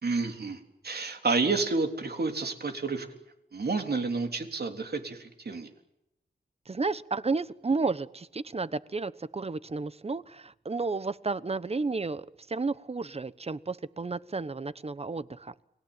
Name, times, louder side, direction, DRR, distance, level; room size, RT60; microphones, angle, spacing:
voice 1, 0.0-3.1 3.5-5.7, right 4 dB, 65° right, 5 dB, 3.6 m, -30 dB
voice 2, 6.7-15.5, right 3 dB, 35° right, 16 dB, 1.0 m, -32 dB
30.0 x 21.0 x 8.9 m, 0.86 s
wide cardioid pair, 90°, 18 cm